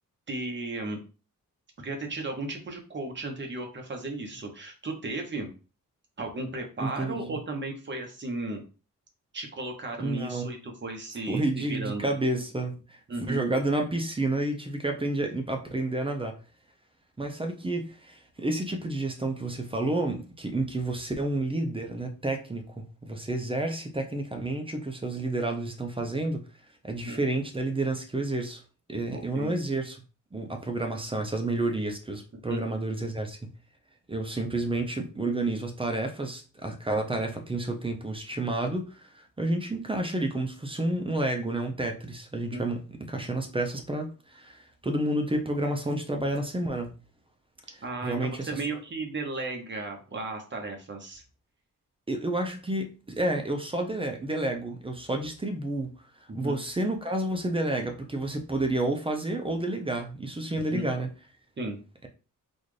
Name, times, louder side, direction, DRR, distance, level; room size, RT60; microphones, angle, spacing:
voice 1, 0.3-1.0 1.8-5.5 6.2-8.6 9.3-12.1 13.1-13.5 27.0-27.2 29.1-29.5 32.5-32.6 42.5-42.6 47.8-51.2 56.3-56.6 60.7-60.8 61.6-61.8, right 2 dB, 35° right, 1.0 m, -35 dB
voice 2, 6.8-7.4 10.0-10.5 11.3-13.0 13.3-16.4 17.2-26.5 26.8-28.6 28.9-30.0 30.3-33.5 34.1-46.9 48.0-48.6 52.1-55.9 56.3-61.1, right 2 dB, 15° right, 0.6 m, -30 dB
4.1 x 2.4 x 3.2 m
wide cardioid pair, 125°, 33 cm